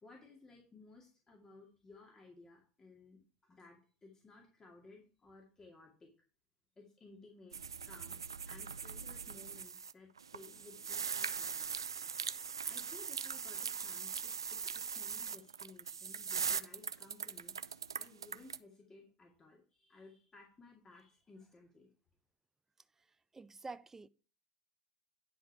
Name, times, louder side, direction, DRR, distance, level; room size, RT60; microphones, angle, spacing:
voice 1, 0.0-6.1 6.8-8.2 8.5-11.7 12.6-17.5 18.0-21.9, left 3 dB, 25° left, 2.4 m, -58 dB
sound 1, 7.5-9.9 10.2-18.6, right 6 dB, 90° right, 0.3 m, -40 dB
voice 2, 23.3-24.1, right 3 dB, 15° right, 0.4 m, -47 dB
10.0 x 5.0 x 4.8 m
hypercardioid pair, 75°, 2 cm